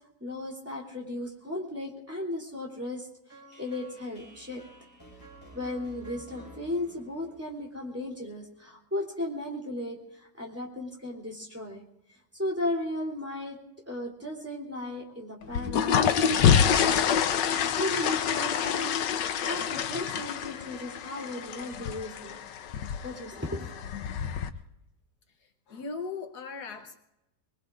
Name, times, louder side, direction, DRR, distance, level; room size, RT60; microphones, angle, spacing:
voice 1, 0.2-4.6 5.5-11.8 12.3-13.6 13.9-22.4 23.0-23.7, left 1 dB, 10° right, -3 dB, 3.0 m, -36 dB
sound 1, 3.3-8.3, right 1 dB, 10° left, 5.2 m, -51 dB
sound 2, 15.4-24.5, left 8 dB, 85° left, 1.4 m, -27 dB
Acoustic guitar / Strum, 17.5-21.7, right 2 dB, 30° right, 3.9 m, -56 dB
voice 2, 25.4-27.0, left 4 dB, 70° left, 5 dB, 1.5 m, -39 dB
25.0 x 20.0 x 2.5 m, 0.89 s
omnidirectional pair, 1.8 m